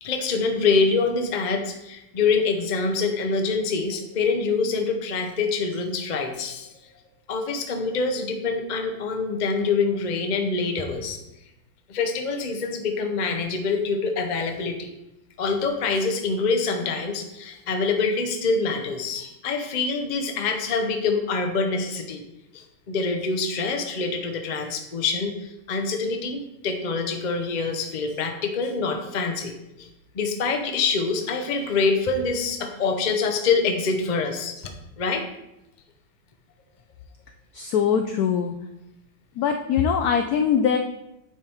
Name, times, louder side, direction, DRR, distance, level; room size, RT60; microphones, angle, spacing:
voice 1, 0.0-6.7 7.3-11.2 11.9-14.9 15.4-22.2 22.5-29.5 29.8-29.9 30.1-34.7 35.0-35.2, left 4 dB, 65° left, 4 dB, 0.4 m, -25 dB
voice 2, 37.5-38.5 39.4-40.8, left 7 dB, 85° left, 5 dB, 0.8 m, -22 dB
9.3 x 3.6 x 4.5 m, 0.88 s
omnidirectional pair, 2.2 m